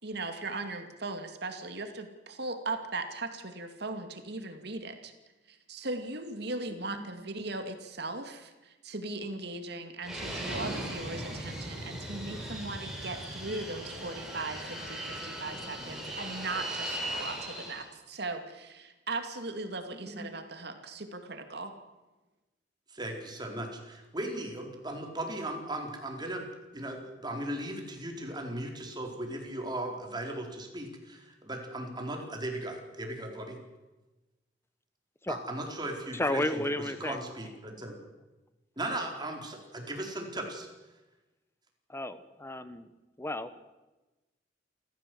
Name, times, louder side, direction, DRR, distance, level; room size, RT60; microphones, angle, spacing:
voice 1, 0.0-5.1 5.5-21.7, right 2 dB, 65° right, 6 dB, 2.5 m, -38 dB
Fixed-wing aircraft airplane, 10.0-17.9, right 1 dB, 5° right, 6.0 m, -38 dB
voice 2, 19.9-20.2 22.9-26.5 26.7-33.6 35.3-37.9 38.8-40.7, right 1 dB, 25° right, 2 dB, 4.3 m, -37 dB
voice 3, 36.1-37.2 41.9-42.9 43.2-43.5, left 1 dB, 15° left, 12 dB, 1.3 m, -32 dB
28.5 x 15.0 x 7.9 m, 1.1 s
head